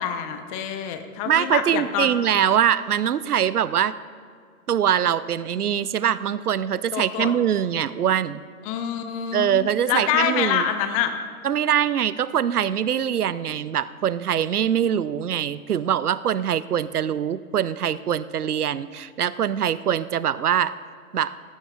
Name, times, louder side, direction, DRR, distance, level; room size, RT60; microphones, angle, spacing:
voice 1, 0.0-2.1 6.9-7.3 8.7-11.1, left 9 dB, 25° left, 8 dB, 0.7 m, -26 dB
voice 2, 1.3-3.9 4.7-8.4 9.3-10.7 11.4-20.7 21.1-21.3, right 9 dB, 85° right, 17 dB, 0.5 m, -23 dB
16.5 x 14.0 x 2.3 m, 2.2 s
figure-of-eight pair, 115°, 44 cm